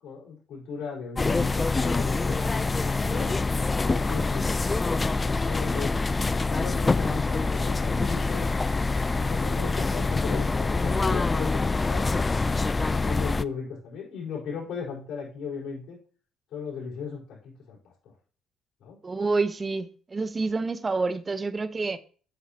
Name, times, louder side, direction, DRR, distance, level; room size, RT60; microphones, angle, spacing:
voice 1, 0.0-2.7 3.1-3.4 3.9-5.9 6.4-8.5 9.1-12.3 12.8-16.0 16.5-18.1 18.8-19.0, left 6 dB, 70° left, 4.3 m, -37 dB
sound 1, 1.1-13.4, left 3 dB, 25° left, 0.4 m, -25 dB
voice 2, 19.0-22.0, right 3 dB, 30° right, 0.8 m, -28 dB
8.3 x 7.5 x 2.8 m
supercardioid pair, 65°, 0 cm